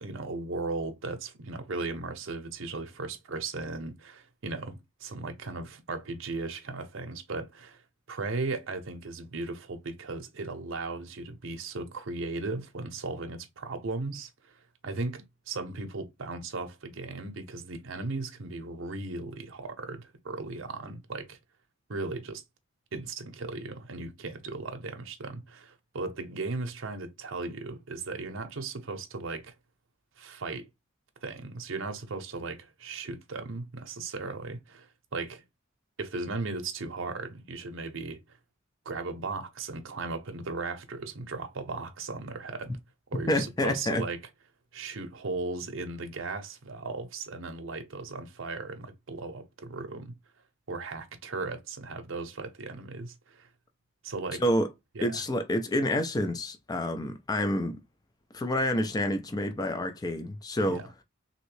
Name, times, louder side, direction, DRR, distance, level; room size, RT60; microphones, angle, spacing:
voice 1, 0.0-7.8 8.1-14.3 14.8-21.4 21.9-22.4 22.9-29.5 30.2-30.7 31.2-35.4 36.0-38.2 38.9-42.8 43.1-44.2 44.7-50.2 50.7-53.5 54.0-54.4 55.0-55.2 60.7-60.9, right 3 dB, 65° right, 0.7 m, -37 dB
voice 2, 43.3-44.0 54.4-54.7 55.0-57.8 58.3-60.8, left 1 dB, 20° left, 0.4 m, -28 dB
2.9 x 2.6 x 3.1 m
head